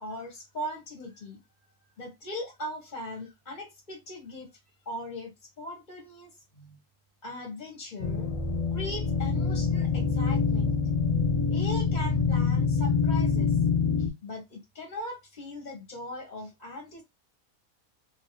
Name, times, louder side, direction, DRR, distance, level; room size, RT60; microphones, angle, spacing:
voice 1, 0.0-1.4 2.0-4.5 4.8-6.8 7.2-8.3 8.7-10.8 11.5-13.6 14.0-17.0, left 1 dB, 35° left, 1.0 m, -39 dB
sound 1, 8.0-14.1, left 5 dB, 55° left, 0.4 m, -25 dB
2.8 x 2.7 x 3.0 m
omnidirectional pair, 1.7 m